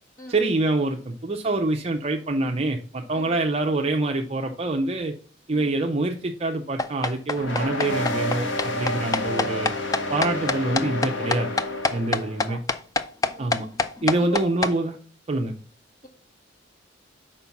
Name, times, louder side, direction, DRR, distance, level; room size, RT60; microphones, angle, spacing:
voice 1, 0.3-5.1 5.5-9.7 10.1-11.5 11.9-12.6 13.4-13.7 14.0-15.0 15.3-15.5, right 2 dB, 30° right, 2 dB, 0.5 m, -25 dB
sound 1, 6.8-14.7, left 4 dB, 20° left, 0.3 m, -25 dB
sound 2, 7.4-12.5, left 1 dB, 65° left, 1.1 m, -29 dB
voice 2, 11.9-12.6 13.3-13.7 14.2-14.6, right 1 dB, 45° left, 1 dB, 2.3 m, -42 dB
5.6 x 4.6 x 5.7 m, 0.42 s
head